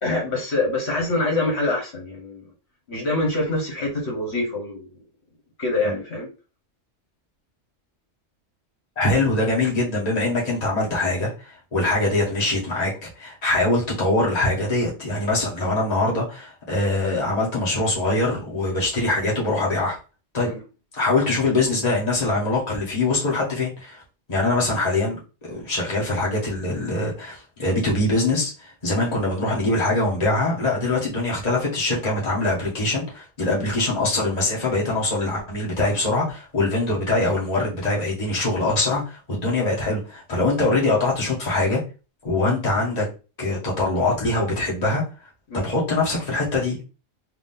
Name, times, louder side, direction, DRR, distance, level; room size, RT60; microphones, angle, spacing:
voice 1, 0.0-2.5 2.9-4.9 5.6-6.3 20.4-20.6 29.0-29.2 45.5-45.6, left 2 dB, 60° left, -2 dB, 1.7 m, -25 dB
voice 2, 9.0-12.9 13.2-20.0 20.3-20.5 20.9-24.0 24.3-41.8 42.2-43.0 43.4-45.0 45.5-46.8, left 2 dB, 30° left, -5 dB, 1.5 m, -23 dB
3.8 x 2.8 x 3.6 m, 0.33 s
omnidirectional pair, 1.3 m